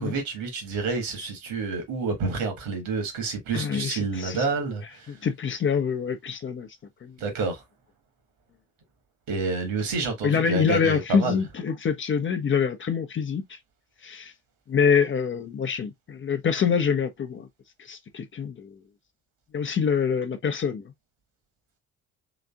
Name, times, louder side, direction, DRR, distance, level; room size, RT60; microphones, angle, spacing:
voice 1, 0.0-5.2 7.2-7.6 9.3-11.4, right 4 dB, 60° right, 1.8 m, -29 dB
voice 2, 3.5-4.5 5.1-6.7 7.0-7.1 10.2-13.6 14.0-14.3 14.7-17.5 17.8-18.8 19.5-20.8, left 6 dB, 30° left, 0.8 m, -25 dB
4.0 x 3.4 x 2.3 m
figure-of-eight pair, 50°, 38 cm